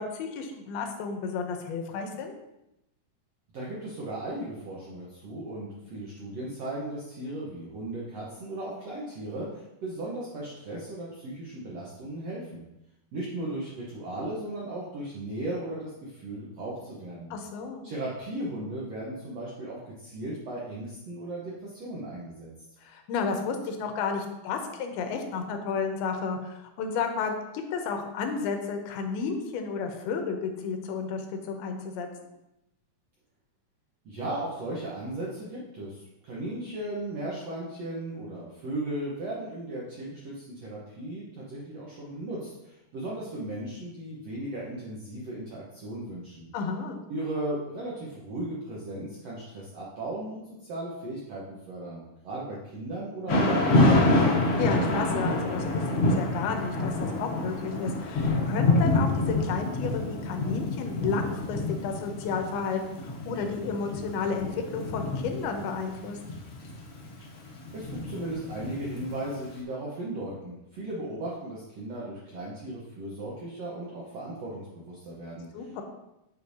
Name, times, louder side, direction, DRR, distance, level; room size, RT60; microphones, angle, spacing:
voice 1, 0.0-2.3 17.3-17.8 22.8-32.1 46.5-47.0 54.6-66.2 75.5-75.8, left 5 dB, 90° left, 4 dB, 2.7 m, -32 dB
voice 2, 3.5-12.7 13.1-17.3 17.8-22.5 34.0-46.5 47.1-54.3 67.7-75.8, right 1 dB, 90° right, -5 dB, 1.4 m, -36 dB
Thunder / Rain, 53.3-69.3, left 2 dB, 75° left, 1.2 m, -27 dB
9.6 x 5.1 x 2.7 m, 0.89 s
omnidirectional pair, 4.5 m